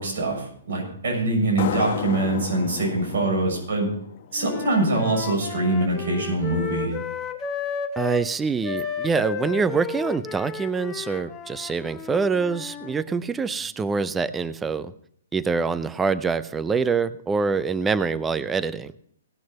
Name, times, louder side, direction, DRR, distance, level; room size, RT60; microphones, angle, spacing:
voice 1, 0.0-3.9 4.3-6.9, right 2 dB, 70° right, -1 dB, 6.7 m, -24 dB
sound 1, 1.6-4.9, left 10 dB, 50° left, 1.0 m, -33 dB
Wind instrument woodwind instrument, 4.4-8.3 8.6-13.0, left 6 dB, 20° left, 0.9 m, -33 dB
voice 2, 8.0-14.9 15.3-18.9, right 5 dB, 10° right, 16 dB, 0.4 m, -25 dB
18.0 x 6.4 x 5.6 m, 0.65 s
hypercardioid pair, 160°, 0 cm